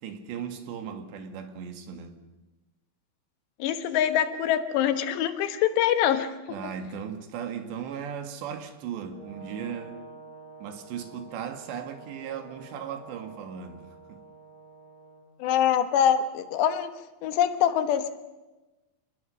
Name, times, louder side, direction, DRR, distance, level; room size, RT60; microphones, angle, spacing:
voice 1, 0.0-2.2 6.5-10.0 10.6-13.8 14.1-14.2, right 8 dB, 80° right, 4.0 m, -37 dB
voice 2, 3.6-6.3 15.4-16.9 17.2-18.1, left 9 dB, 80° left, 3.4 m, -24 dB
Brass instrument, 9.1-15.2, right 4 dB, 40° left, 8.9 m, -48 dB
27.0 x 20.0 x 6.4 m
omnidirectional pair, 5.0 m